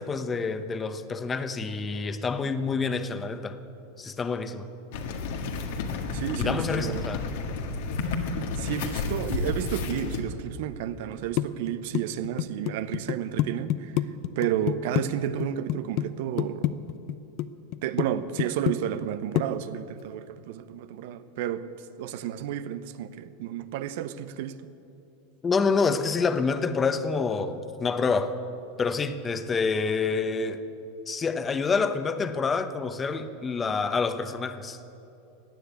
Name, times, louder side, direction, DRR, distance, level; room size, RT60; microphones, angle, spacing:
voice 1, 0.0-3.6 4.0-4.7 6.4-7.2 25.4-28.4 28.8-30.6 31.1-34.8, left 4 dB, 20° left, 1.0 m, -27 dB
sound 1, 4.9-10.2, left 4 dB, 70° left, 1.6 m, -31 dB
voice 2, 6.1-7.1 8.5-16.8 17.8-21.7 22.0-24.6, right 10 dB, 65° right, 0.8 m, -32 dB
sound 2, 11.4-15.0 15.4-16.1 16.4-17.5 17.7-18.1 18.4-19.1 19.4-19.5, left 15 dB, 55° left, 0.6 m, -26 dB
16.5 x 9.8 x 8.2 m
hypercardioid pair, 110°, 0 cm